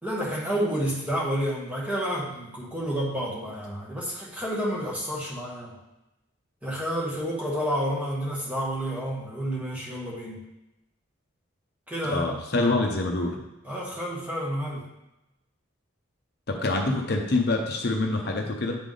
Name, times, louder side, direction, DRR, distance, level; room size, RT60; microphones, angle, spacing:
voice 1, 0.0-5.8 6.6-10.4 11.9-12.4 13.6-14.9, equal, 5° right, -5 dB, 1.2 m, -30 dB
voice 2, 12.1-13.4 16.5-18.8, left 2 dB, 50° left, 1 dB, 0.6 m, -26 dB
9.0 x 3.4 x 3.8 m, 0.94 s
head